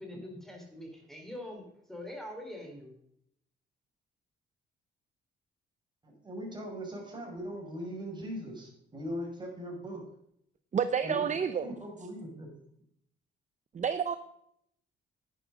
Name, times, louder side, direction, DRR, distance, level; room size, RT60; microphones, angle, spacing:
voice 1, 0.0-2.9, left 1 dB, ahead, 2 dB, 3.9 m, -44 dB
voice 2, 6.0-10.0 11.0-11.3 11.6-12.5, equal, 20° right, 0 dB, 5.4 m, -40 dB
voice 3, 10.7-11.7 13.7-14.2, right 7 dB, 40° right, 11 dB, 0.7 m, -29 dB
11.0 x 9.8 x 5.1 m, 0.71 s
cardioid pair, 90°, 20 cm